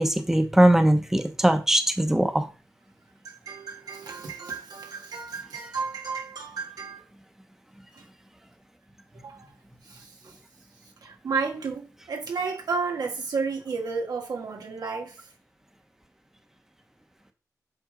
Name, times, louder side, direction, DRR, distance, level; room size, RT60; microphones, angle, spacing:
voice 1, 0.0-2.5, right 1 dB, 5° right, 1.0 m, -20 dB
voice 2, 3.3-7.0 7.9-8.0 9.1-9.5 9.8-10.4 11.0-15.3, right 4 dB, 90° right, 1.8 m, -32 dB
7.7 x 3.7 x 5.2 m
wide cardioid pair, 85°, 7 cm